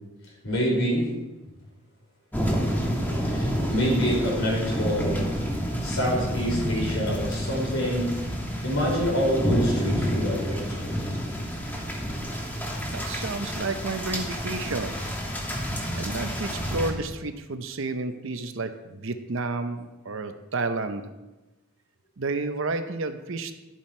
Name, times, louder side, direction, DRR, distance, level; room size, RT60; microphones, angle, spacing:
voice 1, 0.4-1.1 3.2-5.4 5.8-8.1 8.6-10.9, equal, 65° left, -2 dB, 3.9 m, -26 dB
sound 1, 2.3-16.9, equal, 10° left, 1.2 m, -29 dB
voice 2, 12.9-15.0 15.9-21.0 22.2-23.5, right 3 dB, 60° right, 9 dB, 0.7 m, -31 dB
11.0 x 7.4 x 4.4 m, 1.1 s
head